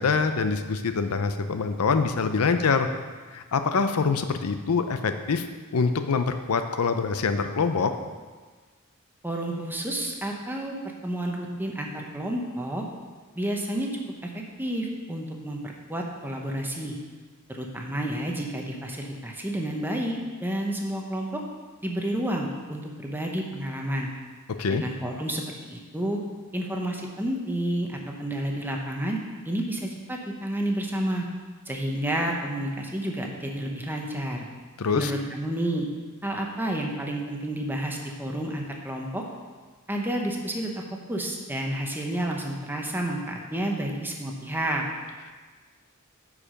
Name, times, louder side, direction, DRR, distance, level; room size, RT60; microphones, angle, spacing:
voice 1, 0.0-2.9 3.3-5.5 5.7-7.9 24.6-24.8 34.8-35.1, left 5 dB, 80° left, 8 dB, 0.6 m, -25 dB
voice 2, 9.2-12.8 13.3-13.9 14.2-17.0 17.5-21.4 21.8-24.1 24.7-26.2 26.5-29.2 29.4-31.3 31.7-34.5 34.9-35.9 36.2-39.2 39.9-40.7 41.1-44.9, right 1 dB, 10° right, 0 dB, 0.9 m, -30 dB
9.7 x 4.9 x 5.1 m, 1.4 s
head